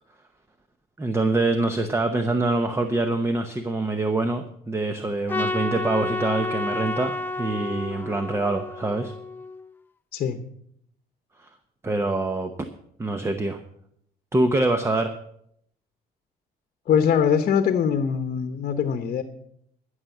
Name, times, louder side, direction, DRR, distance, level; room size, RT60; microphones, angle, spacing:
voice 1, 1.0-9.1 11.4-11.5 11.8-12.5 13.0-13.6 14.3-15.1, right 2 dB, 15° right, 8 dB, 0.9 m, -25 dB
Trumpet, 5.3-9.7, left 2 dB, 10° left, 0.6 m, -30 dB
voice 2, 16.9-19.2, left 7 dB, 55° left, 9 dB, 1.0 m, -22 dB
15.0 x 6.5 x 7.2 m, 0.71 s
cardioid pair, 110°, 17 cm